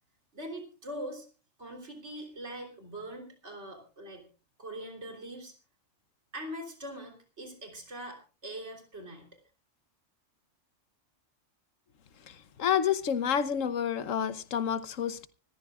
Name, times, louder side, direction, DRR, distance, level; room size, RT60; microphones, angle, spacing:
voice 1, 0.3-1.3 1.6-4.2 4.6-5.5 6.3-9.2, right 1 dB, 60° right, 3.8 m, -42 dB
voice 2, 12.3-15.3, left 8 dB, 75° left, 1.3 m, -29 dB
25.5 x 14.0 x 2.4 m
omnidirectional pair, 1.3 m